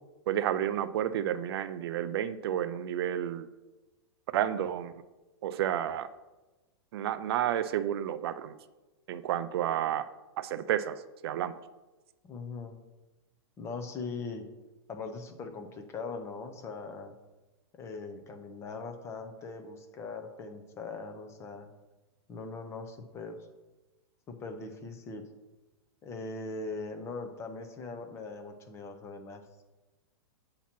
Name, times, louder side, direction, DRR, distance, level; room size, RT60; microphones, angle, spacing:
voice 1, 0.3-3.5 4.3-5.0 5.4-6.1 6.9-8.6 9.1-10.1 10.4-11.6, right 11 dB, 60° right, 12 dB, 0.4 m, -31 dB
voice 2, 12.2-12.8 13.6-14.5 14.9-17.1 17.8-21.7 22.3-23.4 24.3-25.3 26.0-29.6, left 3 dB, 20° left, 6 dB, 0.6 m, -40 dB
8.3 x 2.9 x 5.9 m, 1.1 s
supercardioid pair, 150°, 15 cm